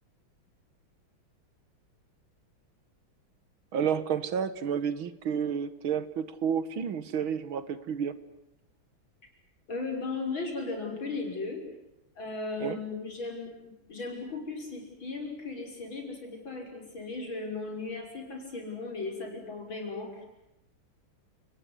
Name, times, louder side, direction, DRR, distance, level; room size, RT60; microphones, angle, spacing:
voice 1, 3.7-8.1 12.6-12.8, right 7 dB, 80° right, 15 dB, 2.2 m, -30 dB
voice 2, 9.7-11.6 12.2-13.5 13.9-20.3, left 3 dB, 70° left, 2 dB, 6.9 m, -36 dB
30.0 x 20.0 x 9.9 m, 0.88 s
omnidirectional pair, 2.2 m